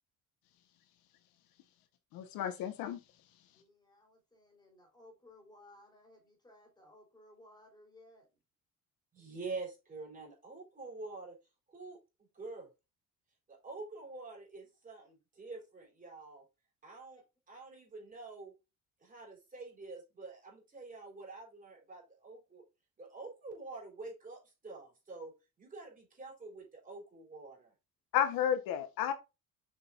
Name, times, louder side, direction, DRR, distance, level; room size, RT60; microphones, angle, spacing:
voice 1, 2.1-3.0 28.1-29.1, left 9 dB, 90° left, 1.2 m, -32 dB
voice 2, 3.6-8.2, left 1 dB, 10° left, 3.9 m, -60 dB
voice 3, 9.1-11.4 11.7-12.0 12.3-12.7 13.5-16.4 16.8-18.5 19.0-22.6 23.0-25.3 25.6-27.7, right 3 dB, 25° right, 4.3 m, -47 dB
7.6 x 5.7 x 2.5 m
cardioid pair, 140°, 34 cm